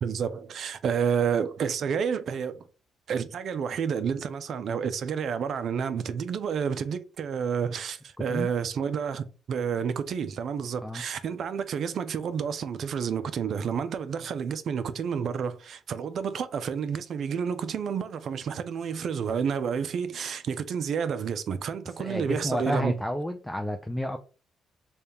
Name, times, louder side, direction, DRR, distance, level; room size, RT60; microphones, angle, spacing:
voice 1, 0.0-2.6 3.1-22.9, right 7 dB, 60° right, 0.4 m, -30 dB
voice 2, 22.0-24.2, equal, 5° left, 0.4 m, -30 dB
3.5 x 2.3 x 4.2 m
cardioid pair, 90°, 0 cm